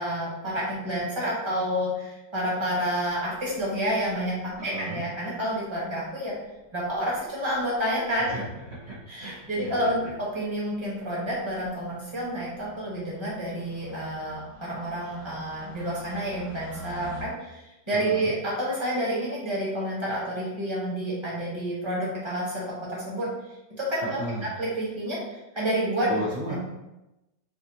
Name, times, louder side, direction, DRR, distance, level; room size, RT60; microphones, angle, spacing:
voice 1, 0.0-6.3 6.7-8.3 9.1-23.3 23.8-24.2 24.6-26.1 26.5-26.6, equal, 20° right, -5 dB, 0.9 m, -29 dB
sound 1, 4.5-4.9 5.8-5.9 6.1-6.2 6.4-6.5 6.9-7.2 7.6-7.8 8.1-17.2, left 2 dB, 60° left, 0.3 m, -48 dB
voice 2, 4.6-5.0 8.2-10.1 17.9-18.3 24.0-24.5 26.1-26.6, right 2 dB, 60° right, -6 dB, 0.6 m, -35 dB
5.8 x 2.5 x 2.7 m, 0.97 s
omnidirectional pair, 2.0 m